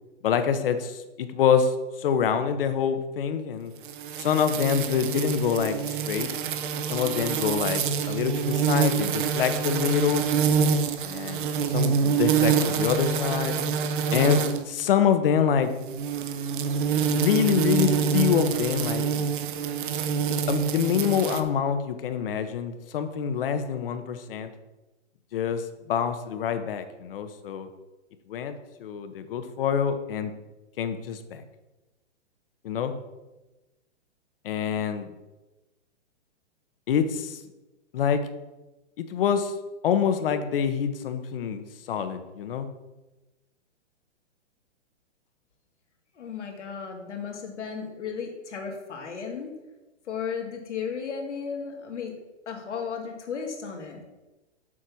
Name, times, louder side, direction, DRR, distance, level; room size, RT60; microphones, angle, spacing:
voice 1, 0.2-3.7 4.2-6.3 6.9-10.2 11.0-13.6 14.1-15.7 17.1-19.3 20.5-24.5 25.3-27.7 28.3-28.5 28.8-30.3 30.8-31.4 32.6-32.9 34.4-35.1 36.9-37.4 37.9-38.2 39.0-39.5 39.8-42.7, left 7 dB, 50° left, 9 dB, 1.0 m, -26 dB
sound 1, 3.8-14.7 15.7-21.4, right 6 dB, 45° right, 0.8 m, -26 dB
voice 2, 46.1-49.5 50.0-52.1 52.5-54.0, left 6 dB, 85° left, 2 dB, 2.3 m, -34 dB
7.5 x 5.5 x 6.2 m, 1.1 s
hypercardioid pair, 155°, 35 cm